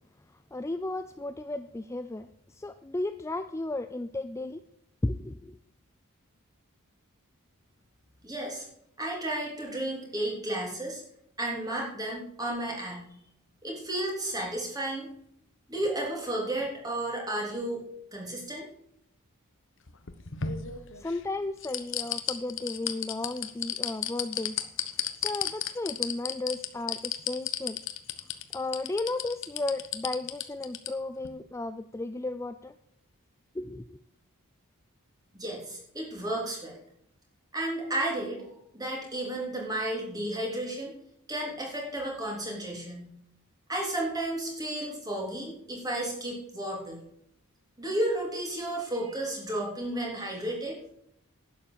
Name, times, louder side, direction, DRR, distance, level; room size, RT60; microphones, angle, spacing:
voice 1, 0.3-4.6 5.0-5.6 20.9-24.6 25.0-27.8 28.5-32.7 33.5-34.0, left 2 dB, 15° left, 10 dB, 0.4 m, -34 dB
voice 2, 8.2-8.6 9.0-11.0 11.4-13.0 13.6-15.1 15.7-17.8 18.1-18.6 35.3-36.8 37.5-38.4 38.7-40.9 41.3-43.1 43.7-47.0 47.8-50.8, right 1 dB, 15° right, -1 dB, 3.4 m, -32 dB
sound 1, 19.9-21.2 21.6-30.9 31.2-31.3, left 10 dB, 55° left, 1.1 m, -32 dB
11.5 x 8.6 x 6.9 m, 0.74 s
head